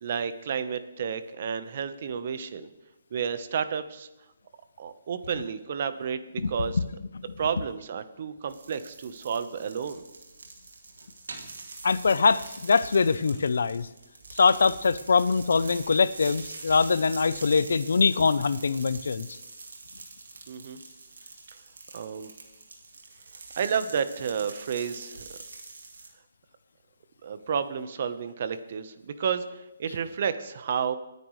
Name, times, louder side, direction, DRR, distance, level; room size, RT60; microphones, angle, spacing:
voice 1, 0.0-2.7 3.1-4.1 4.8-6.8 7.4-10.0 20.5-20.8 21.9-22.3 23.5-25.4 27.2-31.0, right 7 dB, 50° right, 11 dB, 1.0 m, -31 dB
sound 1, 8.5-26.1, right 3 dB, 90° right, 2.5 m, -45 dB
voice 2, 11.8-13.9 14.3-19.3, left 5 dB, 80° left, 16 dB, 0.6 m, -23 dB
26.0 x 9.6 x 3.2 m, 0.96 s
hypercardioid pair, 160°, 0 cm